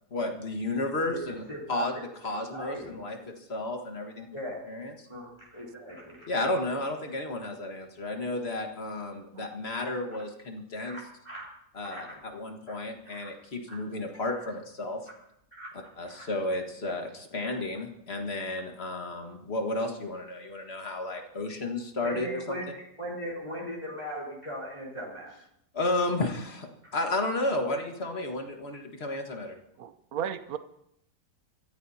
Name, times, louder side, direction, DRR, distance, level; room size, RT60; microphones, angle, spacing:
voice 1, 0.1-1.4 1.7-4.3 4.7-4.9 6.3-11.0 11.7-15.0 16.0-22.4 25.7-29.6, left 2 dB, 40° left, 3 dB, 1.8 m, -32 dB
voice 2, 1.1-2.0 2.5-3.3 4.3-4.6 5.1-6.3 10.8-11.5 11.8-12.1 12.7-12.8 13.0-13.3 13.7-13.8 14.3-14.4 15.1-15.2 15.5-15.7 16.0-16.3 16.9-17.0 22.0-25.3 26.8-26.9, equal, 20° left, -4 dB, 4.1 m, -39 dB
voice 3, 29.8-30.6, right 8 dB, 65° right, 11 dB, 1.2 m, -35 dB
25.5 x 14.5 x 2.8 m, 0.77 s
omnidirectional pair, 1.8 m